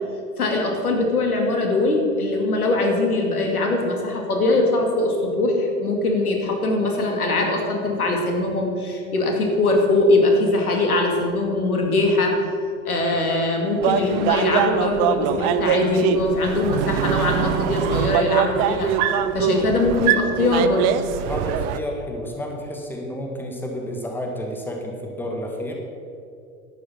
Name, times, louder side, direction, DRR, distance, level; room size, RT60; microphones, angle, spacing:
voice 1, 0.4-12.4 12.9-18.9 19.3-20.9, left 2 dB, 80° left, 1 dB, 2.3 m, -21 dB
sound 1, 13.8-21.8, right 10 dB, 35° right, 0.5 m, -23 dB
voice 2, 21.2-25.7, equal, 5° left, 1 dB, 1.5 m, -30 dB
11.0 x 9.0 x 5.6 m, 2.5 s
figure-of-eight pair, 95°, 44 cm